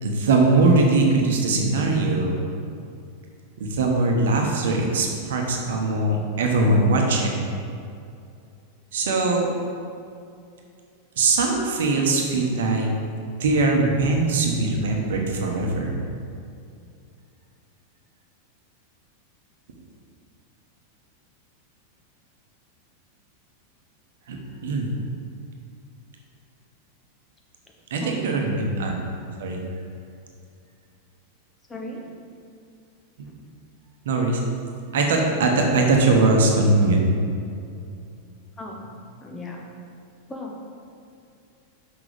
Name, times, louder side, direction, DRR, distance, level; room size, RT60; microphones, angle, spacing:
voice 1, 0.0-2.4 3.6-7.5 8.9-9.5 11.2-12.9 13.4-16.0 24.3-24.4 24.6-24.9 27.9-28.9 29.4-29.6 34.0-34.4 34.9-37.0, right 3 dB, 60° right, 1 dB, 1.1 m, -21 dB
voice 2, 28.0-28.5 31.7-32.1 38.6-38.9 39.2-39.6 40.3-40.6, left 2 dB, 15° left, -1 dB, 1.1 m, -36 dB
6.1 x 5.9 x 5.2 m, 2.5 s
figure-of-eight pair, 90°, 0 cm